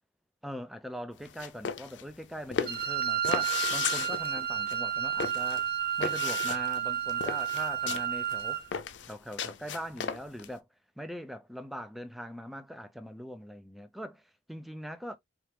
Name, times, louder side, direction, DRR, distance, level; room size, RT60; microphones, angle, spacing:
voice 1, 0.4-5.7 6.0-8.7 9.0-10.7 11.0-15.2, equal, ahead, 0.5 m, -41 dB
sound 1, 1.2-10.5, left 7 dB, 80° left, 0.5 m, -35 dB
Wind instrument woodwind instrument, 2.7-8.7, right 10 dB, 50° right, 0.7 m, -31 dB
4.4 x 2.5 x 3.3 m
head